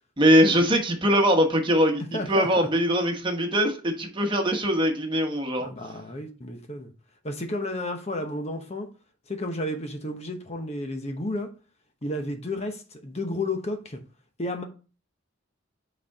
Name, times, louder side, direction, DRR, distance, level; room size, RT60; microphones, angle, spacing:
voice 1, 0.2-2.0 2.3-5.7, equal, 25° right, 1.2 m, -22 dB
voice 2, 2.1-2.7 5.6-6.9 7.2-8.9 9.3-11.5 12.0-14.0 14.4-14.6, left 1 dB, 30° left, 0.9 m, -32 dB
8.2 x 4.3 x 3.6 m
head